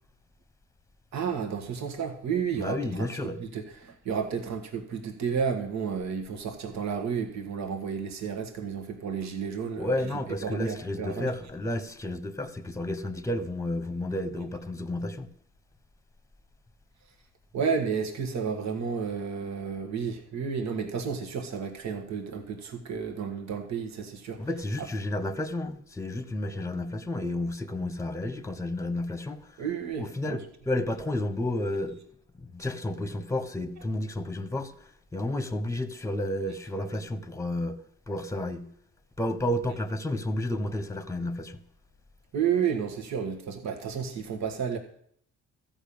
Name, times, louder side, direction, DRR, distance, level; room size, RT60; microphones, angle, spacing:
voice 1, 1.1-3.1 3.4-10.0 10.4-11.3 17.5-24.4 29.6-30.4 42.3-44.8, right 6 dB, 65° right, 1.7 m, -31 dB
voice 2, 2.6-3.4 9.7-15.3 24.4-29.6 30.0-32.0 32.3-34.7 35.1-37.8 38.1-38.7 39.2-41.6, left 1 dB, 10° left, 1.1 m, -31 dB
13.5 x 5.6 x 8.7 m
cardioid pair, 90°, 30 cm